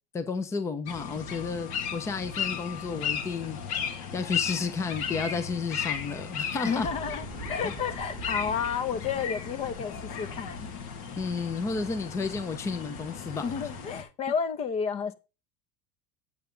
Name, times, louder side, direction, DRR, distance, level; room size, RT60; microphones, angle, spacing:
voice 1, 0.1-3.8 4.1-6.9 7.6-7.7 11.2-13.5, left 4 dB, 15° left, 0.8 m, -32 dB
sound 1, 0.9-14.0, left 7 dB, 70° left, 2.3 m, -35 dB
voice 2, 6.6-10.7 13.4-15.1, left 6 dB, 35° left, 1.0 m, -31 dB
sound 2, 6.8-11.6, right 3 dB, 10° right, 4.2 m, -45 dB
9.1 x 8.3 x 3.9 m
supercardioid pair, 160°, 20 cm